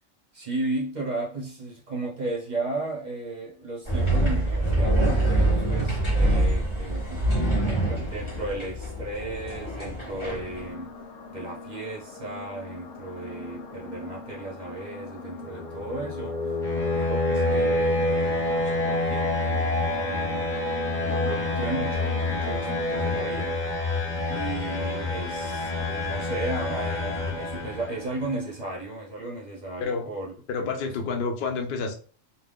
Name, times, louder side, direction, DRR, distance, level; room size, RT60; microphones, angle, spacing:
voice 1, 0.3-7.3 7.6-11.0 11.3-16.6 16.9-20.5 21.0-23.6 24.3-30.3 30.6-30.9, right 2 dB, 45° right, 0.6 m, -35 dB
sound 1, 3.8-10.7, right 1 dB, 25° left, 0.9 m, -25 dB
sound 2, 10.2-23.2, left 2 dB, 85° left, 1.0 m, -41 dB
sound 3, 15.4-28.2, left 2 dB, 5° left, 0.5 m, -27 dB
voice 2, 30.5-31.9, left 4 dB, 60° left, 0.6 m, -29 dB
2.5 x 2.2 x 3.4 m
omnidirectional pair, 1.4 m